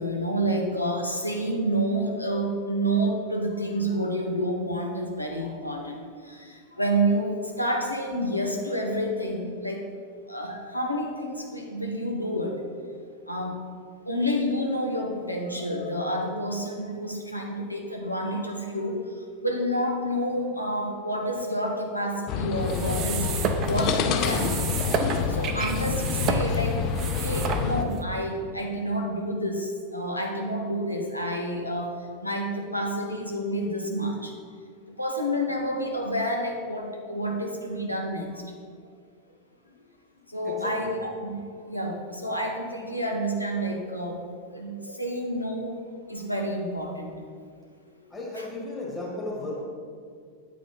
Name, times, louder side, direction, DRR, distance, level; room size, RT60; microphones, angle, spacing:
voice 1, 0.0-9.8 10.3-12.6 13.3-13.6 14.0-24.6 24.9-26.8 27.2-34.3 34.9-38.4 40.3-44.2 44.5-45.8 46.1-47.1 47.9-48.0 48.3-48.5, equal, 85° left, 1 dB, 0.9 m, -29 dB
sound 1, 22.3-27.8, left 7 dB, 40° left, 0.6 m, -27 dB
sound 2, 22.6-28.0, right 6 dB, 35° right, 0.6 m, -31 dB
voice 2, 48.1-49.6, left 2 dB, 15° left, -5 dB, 2.1 m, -34 dB
8.7 x 5.1 x 5.3 m, 2.1 s
figure-of-eight pair, 90°, 0 cm